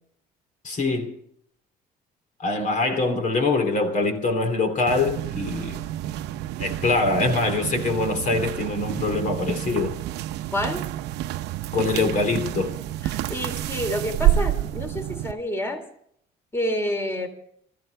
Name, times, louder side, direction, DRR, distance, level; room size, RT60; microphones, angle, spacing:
voice 1, 0.6-1.1 2.4-5.8 6.6-9.9 11.7-12.8, left 3 dB, 50° left, 3.3 m, -24 dB
sound 1, 4.9-15.3, right 13 dB, 85° right, 0.8 m, -28 dB
voice 2, 10.5-10.8 13.0-15.9 16.5-17.3, equal, 15° left, 3.4 m, -28 dB
27.5 x 14.5 x 3.5 m
cardioid pair, 110°, 17 cm